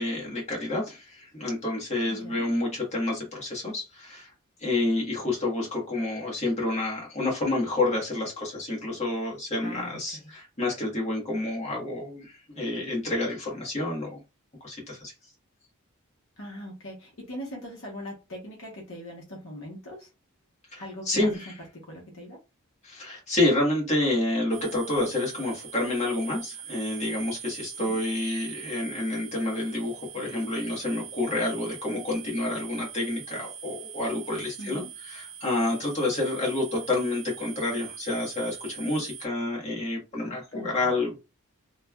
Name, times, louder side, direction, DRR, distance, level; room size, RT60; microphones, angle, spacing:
voice 1, 0.0-4.3 4.6-14.2 14.6-15.1 20.7-21.5 22.8-41.1, left 2 dB, 30° left, 1.2 m, -29 dB
voice 2, 2.1-2.5 9.6-10.3 16.4-20.1 20.8-21.3 21.9-22.4 27.7-28.0 34.6-34.9 40.5-41.0, equal, 60° left, 0.9 m, -41 dB
sound 1, 24.5-39.3, right 8 dB, 75° right, 0.5 m, -42 dB
3.2 x 2.3 x 2.2 m
head